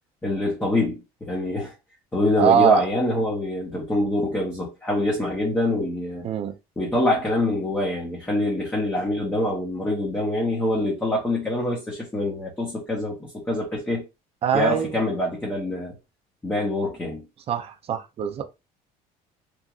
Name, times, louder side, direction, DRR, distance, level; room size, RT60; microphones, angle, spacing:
voice 1, 0.2-1.7 2.1-6.3 6.8-14.0 14.5-15.9 16.4-17.2, left 1 dB, 10° left, 0.9 m, -25 dB
voice 2, 2.4-2.8 6.2-6.5 14.4-14.9 17.5-18.4, right 8 dB, 40° right, 0.5 m, -22 dB
3.0 x 2.5 x 2.4 m
cardioid pair, 130°, 16 cm